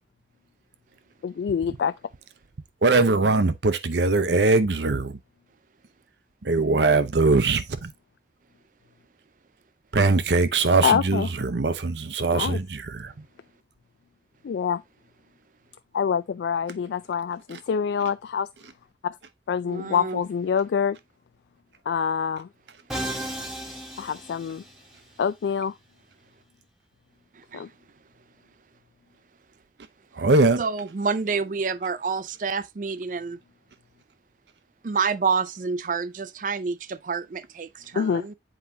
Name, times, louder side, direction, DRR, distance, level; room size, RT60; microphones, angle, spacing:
voice 1, 1.2-1.9 10.8-11.3 12.3-12.6 14.4-14.8 15.9-18.5 19.0-19.1 19.5-21.0 21.9-22.5 24.0-24.6 25.2-25.7 27.5-27.7 37.9-38.2, left 7 dB, 80° left, 0.3 m, -25 dB
voice 2, 2.8-5.2 6.4-7.9 9.9-13.1 30.2-30.6, right 3 dB, 80° right, 0.8 m, -21 dB
voice 3, 19.7-20.2 27.5-27.6 30.6-33.4 34.8-38.3, right 5 dB, 45° right, 0.4 m, -28 dB
Musical instrument, 22.9-25.0, right 1 dB, ahead, 1.1 m, -34 dB
7.8 x 4.9 x 2.7 m
head